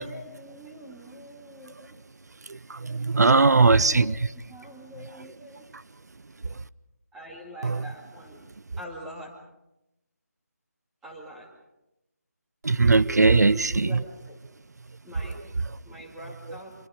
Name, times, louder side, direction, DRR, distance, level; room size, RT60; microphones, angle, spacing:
voice 1, 0.0-2.0 2.9-4.2 4.5-5.7 7.1-9.4 11.0-11.5 13.3-14.4 15.0-15.5 15.8-16.7, equal, 5° right, 2.2 m, -44 dB
voice 2, 2.5-4.2 5.7-5.8 6.5-6.6 7.6-7.8 12.6-14.0, right 3 dB, 75° right, 0.8 m, -20 dB
25.0 x 23.5 x 5.2 m
figure-of-eight pair, 170°, 9 cm